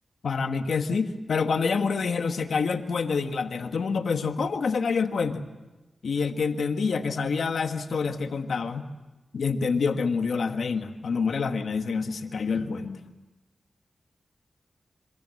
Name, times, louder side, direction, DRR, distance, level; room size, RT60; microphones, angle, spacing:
voice 1, 0.2-5.4 6.0-8.9 9.3-13.0, left 5 dB, 85° left, 7 dB, 1.5 m, -27 dB
27.0 x 25.5 x 7.8 m, 1.1 s
cardioid pair, 60°, 0 cm